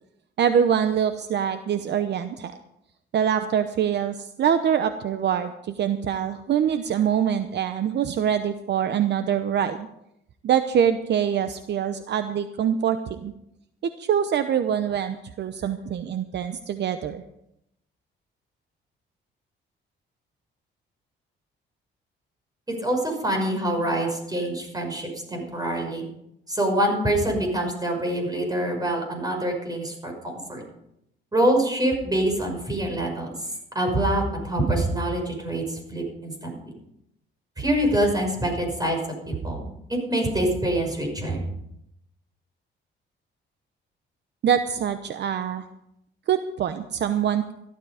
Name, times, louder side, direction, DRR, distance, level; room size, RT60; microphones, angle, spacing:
voice 1, 0.4-2.6 3.1-9.9 10.4-13.3 14.0-17.2 44.4-45.6 46.3-47.4, right 8 dB, 60° right, 10 dB, 0.8 m, -24 dB
voice 2, 22.7-26.1 26.5-30.6 31.3-33.3 33.7-36.7 37.6-39.0 39.3-41.4, right 1 dB, 20° right, 2 dB, 5.8 m, -25 dB
14.5 x 12.0 x 5.0 m, 0.80 s
cardioid pair, 90°, 20 cm